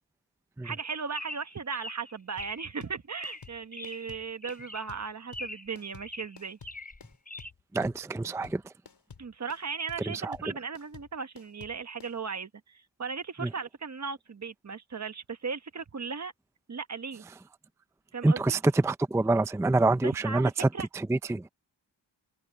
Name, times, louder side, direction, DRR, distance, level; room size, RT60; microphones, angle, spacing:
voice 1, 0.6-6.6 9.2-16.3 16.7-17.2 18.1-18.6 20.0-20.9, right 5 dB, 35° right, 1.2 m, -37 dB
Chirp tweet, 1.1-2.7 3.2-4.2 4.4-5.0 5.3-5.8 6.0-7.5, left 1 dB, 20° left, 4.2 m, -43 dB
sound 1, 2.4-12.1, left 5 dB, 60° left, 4.9 m, -51 dB
voice 2, 7.7-8.7 10.1-10.4 13.4-13.5 18.2-20.7 20.9-21.5, right 2 dB, 5° right, 0.5 m, -26 dB
wide cardioid pair, 115°, 46 cm